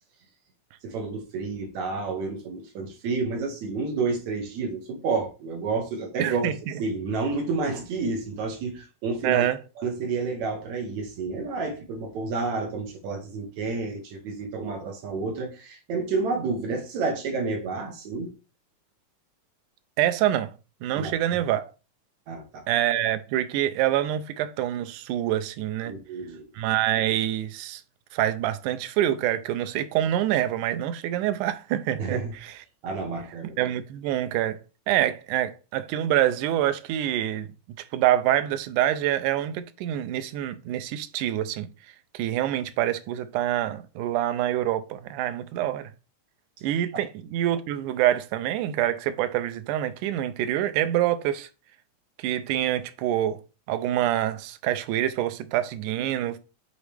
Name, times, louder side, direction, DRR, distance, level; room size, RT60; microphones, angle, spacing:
voice 1, 0.8-6.5 6.8-9.5 9.8-18.3 20.9-21.1 22.3-22.6 25.8-26.4 32.0-32.3 32.8-33.6, right 4 dB, 70° right, 2.4 m, -30 dB
voice 2, 6.2-6.8 9.2-9.6 20.0-20.5 20.8-21.7 22.7-26.0 26.6-27.8 28.1-32.5 33.6-34.6 34.9-37.5 37.9-41.7 42.1-45.9 46.6-51.5 52.2-53.4 53.7-56.4, right 12 dB, 85° right, 2.1 m, -26 dB
8.3 x 3.7 x 3.4 m
omnidirectional pair, 3.6 m